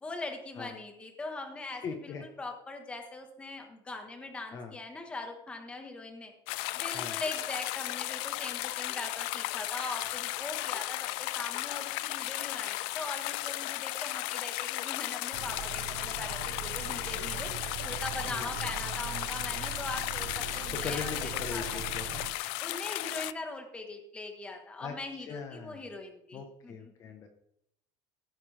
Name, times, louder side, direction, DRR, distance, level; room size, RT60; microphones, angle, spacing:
voice 1, 0.0-6.3 6.7-17.5 17.8-21.8 22.6-26.9, left 2 dB, 10° left, 4 dB, 1.5 m, -41 dB
voice 2, 1.8-2.2 4.5-4.7 6.9-7.2 18.2-18.5 20.7-22.2 24.8-24.9 25.2-25.9 26.3-27.3, left 5 dB, 35° left, 4 dB, 1.2 m, -40 dB
sound 1, 6.5-23.3, left 19 dB, 70° left, 0.4 m, -35 dB
sound 2, 15.3-22.3, right 13 dB, 70° right, 0.8 m, -41 dB
16.0 x 9.5 x 3.5 m, 0.75 s
cardioid pair, 170°, 10 cm